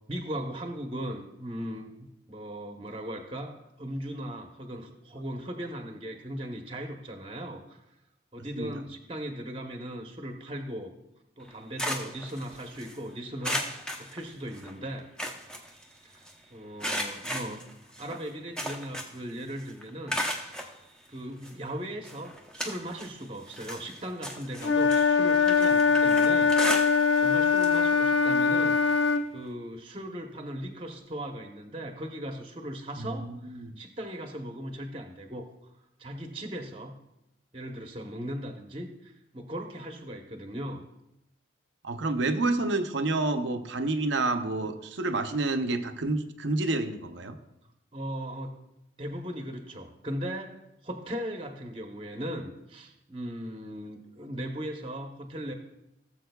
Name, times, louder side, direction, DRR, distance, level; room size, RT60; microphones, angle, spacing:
voice 1, 0.1-7.8 8.3-10.9 11.4-13.7 14.0-15.1 16.0-16.2 16.5-17.7 18.0-20.5 21.1-26.5 27.2-28.8 29.3-35.5 36.0-37.0 37.5-40.8 47.9-48.6 49.0-55.5, equal, 30° right, 3 dB, 0.9 m, -38 dB
sound 1, 11.4-13.0 13.4-14.7 15.0-16.3 16.8-19.3 19.6-20.7 21.4-21.5 22.0-23.2 23.5-27.3 27.6-27.8 28.1-28.2 29.5-29.6, equal, 5° left, 0.7 m, -35 dB
Wind instrument woodwind instrument, 24.6-29.3, left 5 dB, 75° left, 0.7 m, -22 dB
voice 2, 33.0-33.7 41.8-47.4, right 2 dB, 75° right, 8 dB, 0.7 m, -29 dB
17.5 x 7.4 x 2.3 m, 0.88 s
head